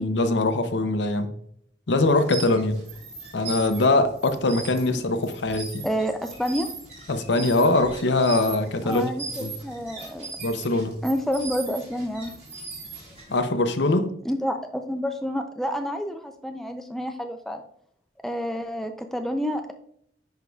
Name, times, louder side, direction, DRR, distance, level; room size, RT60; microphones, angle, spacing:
voice 1, 0.0-1.3 1.9-2.8 3.3-5.9 7.1-9.1 9.4-9.5 10.4-11.0 13.3-14.2, left 2 dB, 75° left, 0.7 m, -22 dB
sound 1, 2.1-13.4, right 3 dB, 35° right, 2.1 m, -39 dB
voice 2, 5.8-6.7 8.8-10.3 11.0-12.3 14.2-17.6 18.2-19.7, equal, ahead, 0.4 m, -29 dB
10.5 x 4.6 x 2.3 m
head